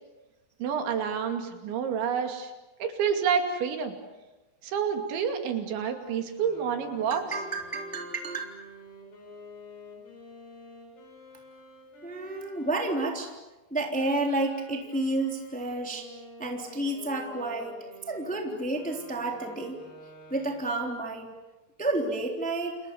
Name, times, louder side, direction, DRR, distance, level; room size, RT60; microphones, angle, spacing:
voice 1, 0.6-2.5 2.8-3.9 4.6-7.2, right 7 dB, 75° right, 5 dB, 4.8 m, -28 dB
sound 1, 6.3-13.3 13.9-21.1, left 1 dB, 55° left, 8.5 m, -49 dB
voice 2, 7.1-8.5 12.0-13.3 13.7-16.1 16.4-17.8 18.1-19.8 20.3-21.3 21.8-22.8, right 2 dB, ahead, 2 dB, 2.5 m, -30 dB
30.0 x 28.5 x 7.1 m, 1.1 s
omnidirectional pair, 5.4 m